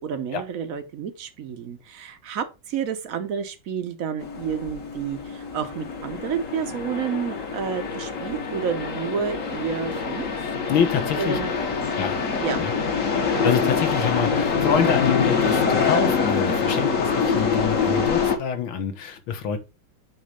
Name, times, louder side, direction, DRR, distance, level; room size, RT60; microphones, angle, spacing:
voice 1, 0.0-10.3 11.2-11.6 11.8-12.0 12.4-12.6, right 7 dB, 55° right, 1.0 m, -30 dB
sound 1, 4.2-18.4, left 5 dB, 45° left, 1.4 m, -25 dB
voice 2, 10.7-11.6 11.9-12.1 12.6-12.7 13.3-19.6, left 7 dB, 75° left, 1.8 m, -26 dB
8.4 x 3.1 x 5.0 m
omnidirectional pair, 2.3 m